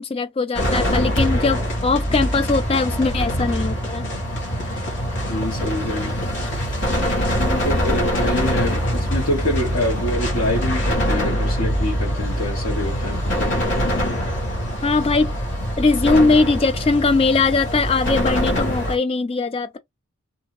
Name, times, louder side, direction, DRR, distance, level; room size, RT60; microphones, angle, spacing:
voice 1, 0.0-4.0 14.8-15.3 15.8-19.8, left 3 dB, 25° left, 0.3 m, -20 dB
sound 1, 0.5-19.0, equal, 55° left, 1.3 m, -23 dB
voice 2, 5.3-6.2 7.3-13.6, left 1 dB, 90° left, 1.2 m, -26 dB
2.7 x 2.6 x 2.8 m
head